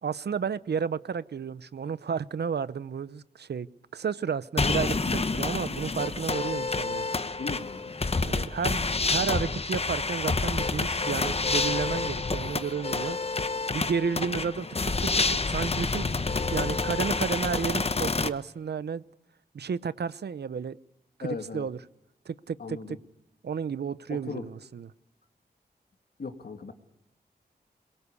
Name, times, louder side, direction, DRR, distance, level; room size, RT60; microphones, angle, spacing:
voice 1, 0.0-3.7 3.9-7.1 8.2-13.2 13.7-16.1 16.5-19.0 19.5-20.8 21.2-21.8 22.3-23.0 23.4-24.9, right 6 dB, 75° right, 16 dB, 0.8 m, -32 dB
sound 1, 4.6-18.3, left 3 dB, 35° left, 1.1 m, -28 dB
voice 2, 7.4-8.3 21.2-21.7 22.6-23.0 24.1-24.5 26.2-26.7, left 4 dB, 65° left, 6 dB, 2.7 m, -38 dB
23.0 x 22.0 x 8.4 m, 0.89 s
wide cardioid pair, 85°, 17 cm